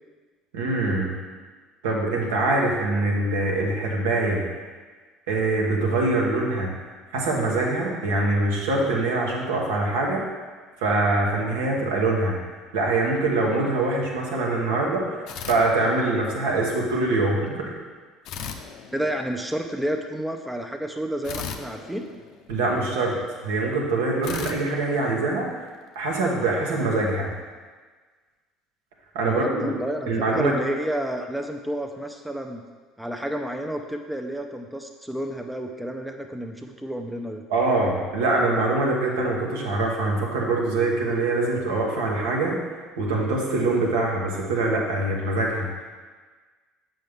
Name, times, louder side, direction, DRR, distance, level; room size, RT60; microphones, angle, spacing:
voice 1, 0.5-1.2 1.8-4.4 5.3-6.7 7.1-10.2 10.8-12.4 12.7-17.7 22.5-23.2 23.4-25.7 25.9-27.3 29.1-29.8 30.1-30.5 37.5-42.6 43.0-45.7, right 2 dB, 75° right, -2 dB, 1.3 m, -24 dB
sound 1, 15.3-16.4 18.2-19.6 21.2-22.9 24.2-25.8, left 7 dB, 60° left, 0.5 m, -38 dB
voice 2, 18.9-22.1 29.2-32.6 33.0-37.4, right 1 dB, 5° right, 4 dB, 0.6 m, -30 dB
7.5 x 5.5 x 3.6 m, 1.4 s
hypercardioid pair, 65°, 0 cm